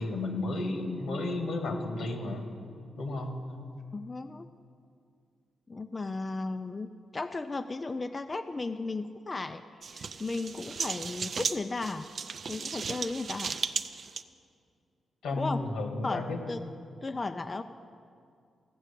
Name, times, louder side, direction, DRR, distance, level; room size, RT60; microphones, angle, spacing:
voice 1, 0.0-2.4 3.0-3.4 15.2-16.4, left 2 dB, 90° left, 3 dB, 1.7 m, -32 dB
voice 2, 3.9-4.5 5.7-9.6 9.9-12.1 12.5-13.6 15.4-15.6 16.0-16.6 17.0-17.6, left 3 dB, 25° left, 9 dB, 0.4 m, -35 dB
sound 1, 9.8-14.2, right 5 dB, 55° right, 0.5 m, -35 dB
15.0 x 6.1 x 8.3 m, 2.3 s
cardioid pair, 105°, 0 cm